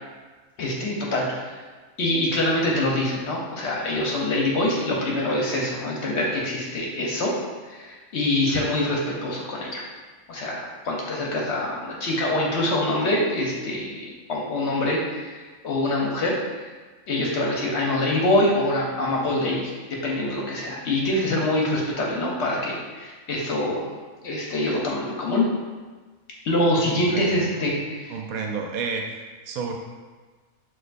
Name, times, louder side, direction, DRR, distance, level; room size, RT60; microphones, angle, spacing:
voice 1, 0.6-1.5 2.0-7.3 7.7-9.8 10.3-16.7 17.1-19.7 20.0-23.9 24.2-25.5 26.4-28.2, left 1 dB, 60° left, -3 dB, 0.8 m, -25 dB
voice 2, 26.8-27.4 28.1-29.7, right 5 dB, 85° right, 2 dB, 1.0 m, -31 dB
6.1 x 2.3 x 2.5 m, 1.4 s
omnidirectional pair, 1.5 m